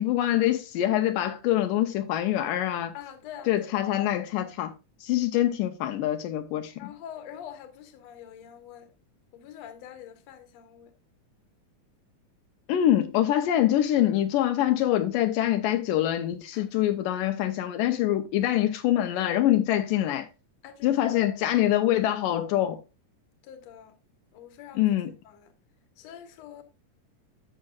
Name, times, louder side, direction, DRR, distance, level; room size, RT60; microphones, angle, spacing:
voice 1, 0.0-3.0 3.5-4.7 5.0-6.9 12.7-20.3 20.8-22.8 24.8-25.1, left 12 dB, 80° left, 2.3 m, -25 dB
voice 2, 2.9-3.9 6.8-8.9 9.3-10.9 16.5-16.7 20.6-21.2 23.4-24.0 24.3-24.9 25.2-25.5 26.0-26.6, left 9 dB, 60° left, 2.2 m, -45 dB
11.0 x 7.4 x 2.4 m
omnidirectional pair, 3.9 m